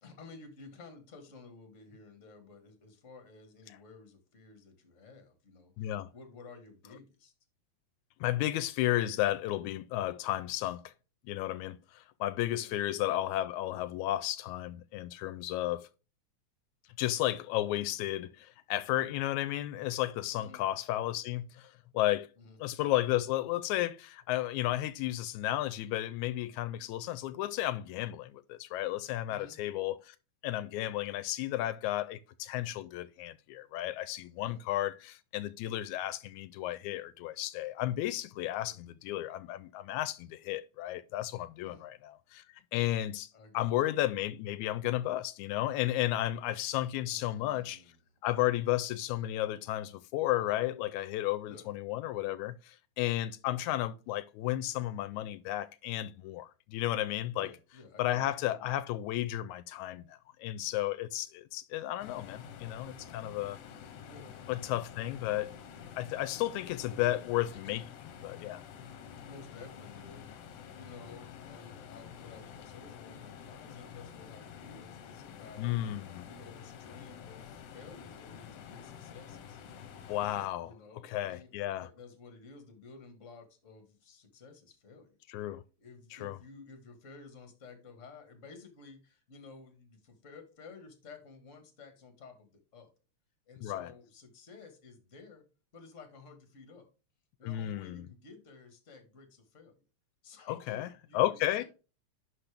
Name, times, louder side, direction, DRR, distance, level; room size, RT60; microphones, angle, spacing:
voice 1, 0.0-7.3 12.6-12.7 20.4-20.6 22.4-22.6 29.3-29.6 34.4-34.6 38.6-38.8 41.6-41.8 43.3-43.7 47.1-48.0 51.5-51.7 57.3-58.8 64.0-64.5 66.9-67.2 67.5-67.8 69.2-75.7 76.2-79.6 80.6-85.2 85.8-92.9 93.5-95.4 95.7-96.9 97.4-99.8 100.2-101.6, left 4 dB, 30° left, 1.7 m, -53 dB
voice 2, 5.8-6.1 8.2-10.9 11.3-15.9 17.0-22.3 22.6-30.2 30.4-42.4 42.7-47.8 48.2-57.5 58.0-63.6 64.5-65.5 66.0-67.9 68.2-68.6 75.6-76.3 80.1-80.7 81.0-81.9 85.3-85.6 86.1-86.4 93.6-93.9 97.4-98.1 100.5-100.9 101.1-101.6, left 14 dB, 85° left, 1.9 m, -33 dB
sound 1, 62.0-80.5, left 8 dB, 70° left, 1.8 m, -49 dB
11.0 x 4.2 x 3.4 m
omnidirectional pair, 3.3 m